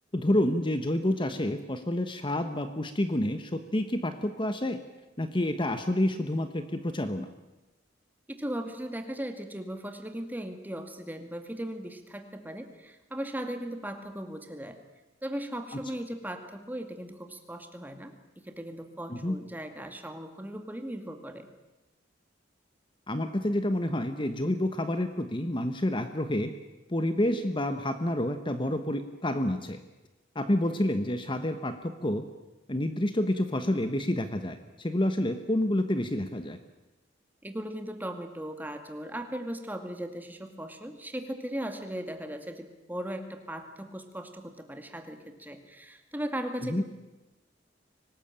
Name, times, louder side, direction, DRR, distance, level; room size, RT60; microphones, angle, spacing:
voice 1, 0.1-4.8 5.2-7.3 19.1-19.4 23.1-26.5 26.9-29.8 30.3-32.3 32.7-36.6 46.6-46.8, left 1 dB, 25° left, 9 dB, 1.1 m, -28 dB
voice 2, 8.3-14.8 15.2-21.5 37.4-46.8, right 1 dB, 10° right, 6 dB, 2.2 m, -38 dB
24.5 x 19.5 x 8.9 m, 1.0 s
head